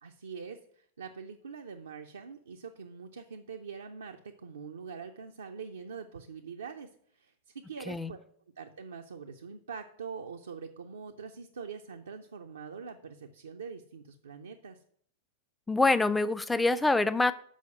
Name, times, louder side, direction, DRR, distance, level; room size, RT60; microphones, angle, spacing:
voice 1, 0.0-8.2 8.6-14.8, right 6 dB, 70° right, 0.5 m, -44 dB
voice 2, 15.7-17.3, left 2 dB, 10° left, 0.4 m, -25 dB
6.3 x 5.1 x 6.5 m
figure-of-eight pair, 90°, 0 cm